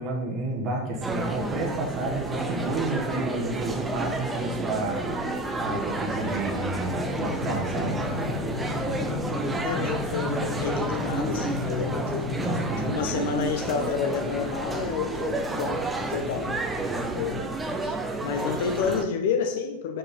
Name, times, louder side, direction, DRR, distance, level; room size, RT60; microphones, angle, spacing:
voice 1, 0.0-5.1 5.6-8.0 12.4-13.3, right 2 dB, 35° right, 0 dB, 1.4 m, -30 dB
sound 1, 1.0-19.0, right 2 dB, 10° right, 0.7 m, -31 dB
sound 2, 6.9-12.7, left 4 dB, 20° left, 1.0 m, -33 dB
voice 2, 8.6-12.4 12.9-16.6 16.9-17.4 17.8-18.0 18.2-20.0, left 6 dB, 55° left, 7 dB, 0.6 m, -30 dB
4.9 x 4.7 x 5.7 m, 1.0 s
figure-of-eight pair, 90°, 0 cm